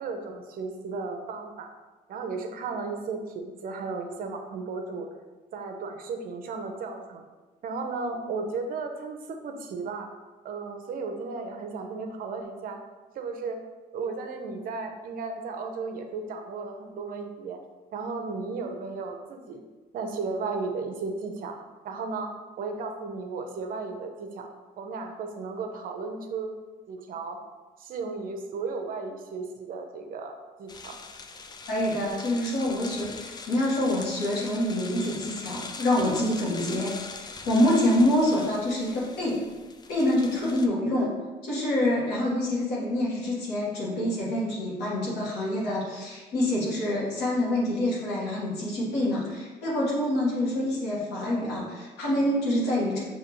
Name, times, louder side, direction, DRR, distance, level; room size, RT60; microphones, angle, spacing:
voice 1, 0.0-1.7 2.1-5.1 5.5-7.2 7.6-10.1 10.4-12.8 13.1-13.6 13.9-17.6 17.9-19.6 19.9-21.6 21.8-22.3 22.6-24.5 24.8-26.5 26.9-27.4 27.8-30.3 30.6-31.0, right 4 dB, 55° right, 5 dB, 0.6 m, -34 dB
sound 1, 30.7-40.7, left 4 dB, 25° left, 0.3 m, -42 dB
voice 2, 31.7-36.9 37.2-39.4 39.9-41.1 41.4-53.1, left 1 dB, 85° left, -7 dB, 1.4 m, -26 dB
5.8 x 2.7 x 3.0 m, 1.3 s
cardioid pair, 110°, 17 cm